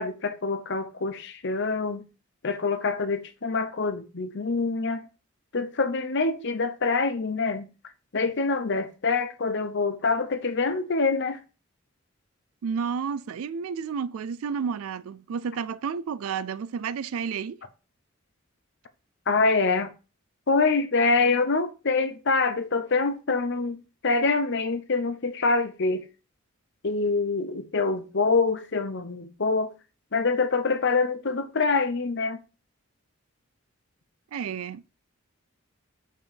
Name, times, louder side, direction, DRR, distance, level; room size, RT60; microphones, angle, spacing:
voice 1, 0.0-2.0 2.4-5.0 5.5-7.7 8.1-11.4 19.3-19.9 20.5-26.1 26.8-29.7 30.1-32.4, left 4 dB, 55° left, 0.8 m, -25 dB
voice 2, 12.6-17.6 34.3-34.9, right 6 dB, 85° right, 0.4 m, -31 dB
5.5 x 4.6 x 5.1 m
head